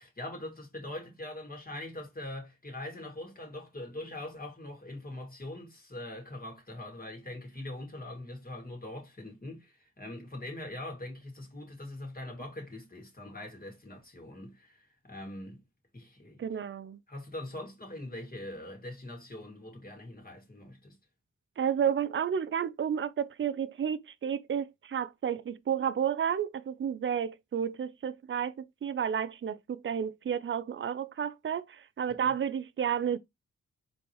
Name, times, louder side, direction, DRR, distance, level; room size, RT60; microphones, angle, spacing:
voice 1, 0.0-15.6 15.9-16.5 17.1-21.0, left 1 dB, 25° left, 2.3 m, -42 dB
voice 2, 16.4-17.0 21.6-33.2, right 8 dB, 40° right, 0.5 m, -31 dB
4.2 x 3.1 x 3.0 m
supercardioid pair, 40°, 33 cm